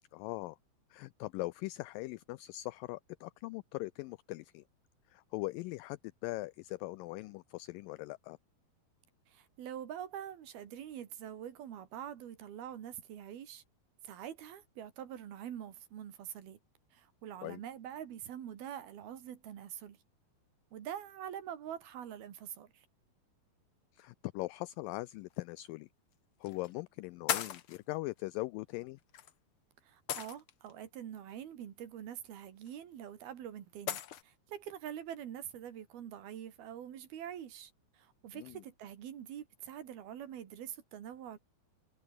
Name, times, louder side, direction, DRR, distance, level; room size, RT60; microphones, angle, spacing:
voice 1, 0.1-0.6 0.9-4.6 5.1-8.4 17.4-17.6 23.9-25.9 26.4-29.0 38.3-38.6, left 20 dB, 90° left, 1.9 m, -41 dB
voice 2, 9.3-13.6 14.0-16.6 16.9-20.0 20.7-22.9 29.8-41.4, right 10 dB, 75° right, 4.1 m, -45 dB
sound 1, 25.3-25.4 26.4-26.7 27.3-27.8 29.1-29.3 30.1-30.7 32.7-32.8 33.9-34.2, left 10 dB, 65° left, 1.3 m, -36 dB
omnidirectional pair, 4.5 m